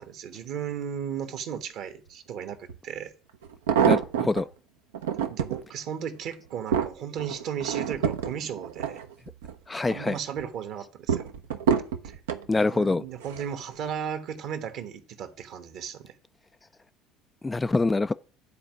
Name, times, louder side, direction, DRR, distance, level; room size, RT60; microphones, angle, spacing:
voice 1, 0.0-3.1 5.0-9.0 9.9-11.3 12.0-12.2 12.6-16.2, right 8 dB, 55° right, 1.2 m, -35 dB
sound 1, 2.7-2.8 3.4-4.4 4.9-5.6 6.2-9.6 10.0-10.4 11.1-12.5 13.2-13.6 13.9-14.0, right 8 dB, 70° right, 0.7 m, -27 dB
voice 2, 3.9-4.5 9.7-10.2 12.5-13.0 17.4-18.1, left 3 dB, 15° left, 0.3 m, -25 dB
10.0 x 4.4 x 6.0 m
figure-of-eight pair, 60°, 0 cm